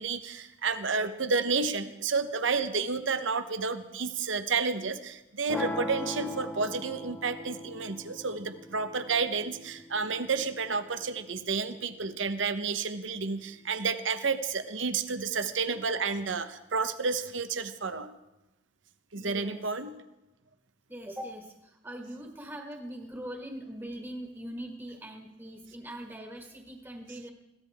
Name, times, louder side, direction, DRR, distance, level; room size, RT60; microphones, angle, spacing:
voice 1, 0.0-18.1 19.1-20.0, right 4 dB, 75° right, 10 dB, 0.9 m, -31 dB
sound 1, 5.5-11.5, left 1 dB, 10° left, 0.9 m, -40 dB
voice 2, 19.1-19.6 20.9-27.3, right 1 dB, 10° right, 2 dB, 1.7 m, -42 dB
21.5 x 15.5 x 3.6 m, 0.95 s
head